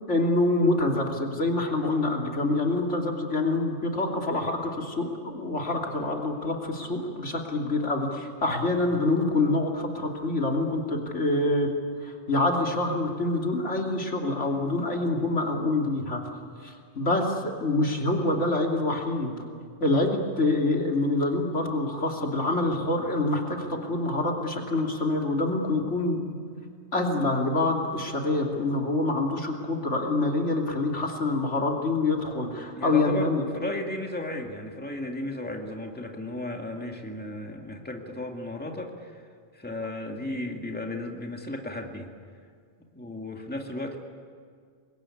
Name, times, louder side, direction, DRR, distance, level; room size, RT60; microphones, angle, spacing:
voice 1, 0.1-11.7 12.0-16.2 16.6-19.4 19.8-26.4 26.9-33.4, left 2 dB, 80° left, 1 dB, 3.3 m, -26 dB
voice 2, 32.8-39.3 39.5-42.1 42.9-44.0, left 1 dB, 10° left, 2 dB, 2.2 m, -34 dB
26.0 x 21.5 x 9.9 m, 2.1 s
omnidirectional pair, 1.2 m